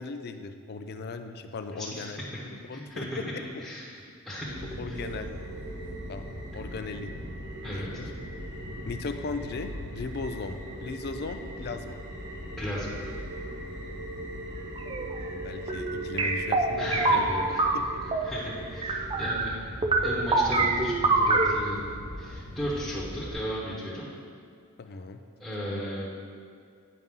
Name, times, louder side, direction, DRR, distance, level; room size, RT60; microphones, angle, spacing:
voice 1, 0.0-2.2 2.7-3.4 4.8-5.3 6.1-6.3 6.5-7.1 7.7-8.1 8.9-12.0 15.2-17.3 17.7-18.0 24.8-25.2, left 3 dB, 45° left, 8 dB, 0.4 m, -37 dB
voice 2, 1.8-2.1 2.7-3.0 3.6-4.0 4.2-5.0 7.6-7.9 12.6-12.9 16.8-17.6 18.2-19.5 20.0-21.8 22.2-24.1 25.4-26.1, equal, ahead, -8 dB, 1.2 m, -35 dB
sound 1, 4.3-23.3, right 1 dB, 55° right, 1.3 m, -39 dB
sound 2, 14.8-15.2 15.7-18.3 18.8-19.6 19.8-21.5, right 3 dB, 25° right, 0.4 m, -25 dB
9.4 x 5.4 x 3.7 m, 2.2 s
head